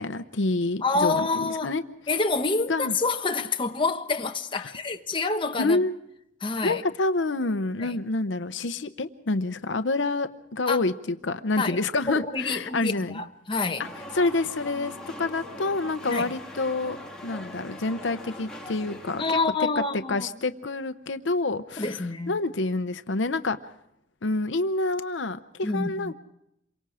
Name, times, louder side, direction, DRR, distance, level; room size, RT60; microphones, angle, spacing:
voice 1, 0.0-1.8 2.7-2.9 4.6-4.7 5.6-6.0 6.6-13.2 13.8-13.9 14.1-17.0 17.2-19.4 19.8-19.9 20.1-23.7 24.2-26.1, left 2 dB, 70° left, 0.8 m, -28 dB
voice 2, 0.8-1.7 2.1-5.8 6.4-6.8 7.8-8.0 10.7-10.8 11.6-11.8 12.1-13.8 16.1-16.3 19.2-20.3 21.8-22.4 25.6-26.1, left 3 dB, 25° left, 1.0 m, -27 dB
sound 1, 13.8-19.4, left 1 dB, 5° left, 2.7 m, -41 dB
27.5 x 24.0 x 5.0 m
head